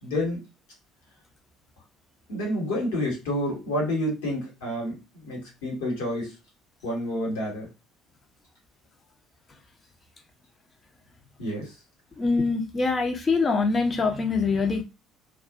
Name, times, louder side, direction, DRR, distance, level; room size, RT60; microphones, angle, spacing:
voice 1, 0.0-0.4 2.3-6.3 6.8-7.7 11.4-11.7, left 1 dB, 70° left, -2 dB, 1.3 m, -29 dB
voice 2, 12.2-14.8, left 4 dB, 30° left, 5 dB, 0.7 m, -24 dB
2.5 x 2.3 x 2.4 m, 0.25 s
figure-of-eight pair, 55°, 0 cm